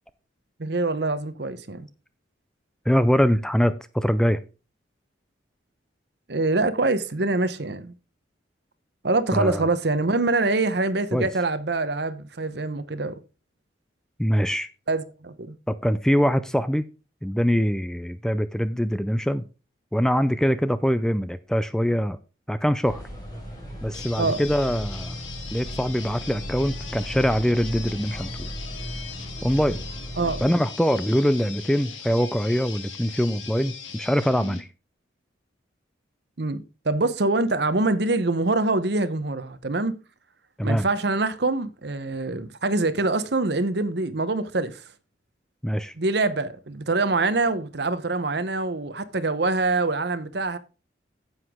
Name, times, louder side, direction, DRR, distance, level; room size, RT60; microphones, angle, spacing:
voice 1, 0.6-1.9 6.3-7.9 9.0-13.2 14.9-15.6 24.2-24.4 30.2-30.4 36.4-39.9 40.6-44.8 45.9-50.6, right 2 dB, 60° right, 0.9 m, -25 dB
voice 2, 2.9-4.4 9.3-9.7 11.1-11.3 14.2-14.7 15.7-16.8 17.2-19.5 19.9-22.2 22.5-23.0 23.8-25.2 25.5-28.5 29.4-29.8 30.4-34.7 40.6-40.9 45.6-45.9, equal, 5° left, 0.4 m, -23 dB
sound 1, 22.8-30.5, equal, 20° left, 3.5 m, -36 dB
sound 2, 23.9-34.6, left 6 dB, 85° left, 1.9 m, -40 dB
9.7 x 8.0 x 3.6 m
head